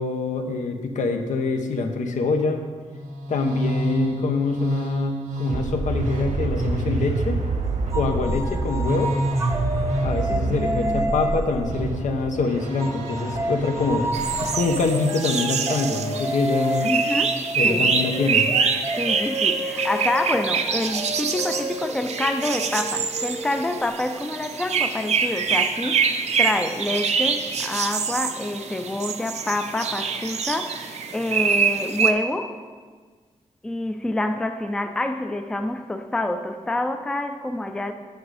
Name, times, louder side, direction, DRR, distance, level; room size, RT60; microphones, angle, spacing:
voice 1, 0.0-2.7 3.3-7.4 7.9-9.2 10.0-14.1 14.4-16.9 17.5-18.5, left 3 dB, 85° left, 5 dB, 0.9 m, -25 dB
sound 1, 2.9-14.8, right 2 dB, 90° right, 1.4 m, -27 dB
sound 2, 7.9-12.3 12.8-24.2, right 1 dB, 20° right, 0.7 m, -31 dB
voice 2, 10.3-11.1 16.8-17.9 18.9-32.6 33.6-37.9, left 2 dB, 5° left, 7 dB, 0.4 m, -27 dB
sound 3, 14.1-32.1, right 5 dB, 60° right, 0.6 m, -25 dB
8.6 x 6.3 x 4.9 m, 1.5 s
wide cardioid pair, 180°, 13 cm